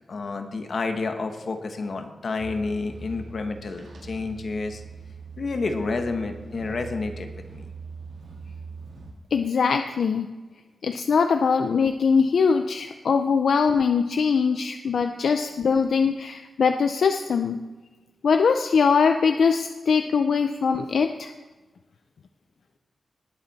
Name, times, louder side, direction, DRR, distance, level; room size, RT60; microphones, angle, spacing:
voice 1, 0.1-4.8 5.4-7.7, left 3 dB, 55° left, 6 dB, 1.1 m, -30 dB
sound 1, 2.4-9.1, right 4 dB, 70° right, 2.2 m, -41 dB
voice 2, 9.3-10.3 10.8-17.6 18.2-21.3, left 5 dB, 75° left, 7 dB, 0.5 m, -22 dB
19.5 x 7.4 x 4.1 m, 1.3 s
wide cardioid pair, 175°, 0 cm